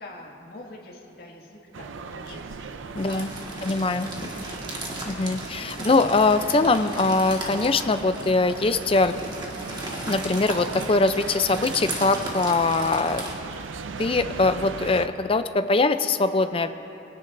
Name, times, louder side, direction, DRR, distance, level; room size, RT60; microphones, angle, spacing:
voice 1, 0.0-3.2 3.5-4.7, left 2 dB, 55° left, -3 dB, 2.0 m, -45 dB
sound 1, 1.7-15.1, right 4 dB, 90° right, 0.5 m, -38 dB
voice 2, 2.9-3.3 3.6-4.1 5.1-9.1 10.1-13.2 14.0-16.7, left 3 dB, 30° left, 10 dB, 0.5 m, -22 dB
sound 2, 3.0-13.3, right 1 dB, 25° right, 1.7 m, -36 dB
sound 3, 4.2-4.9 5.2-6.6 7.1-7.2 7.5-8.4 9.1-9.8 10.2-10.6, left 1 dB, 85° left, 1.3 m, -44 dB
23.0 x 17.0 x 2.6 m, 2.9 s
head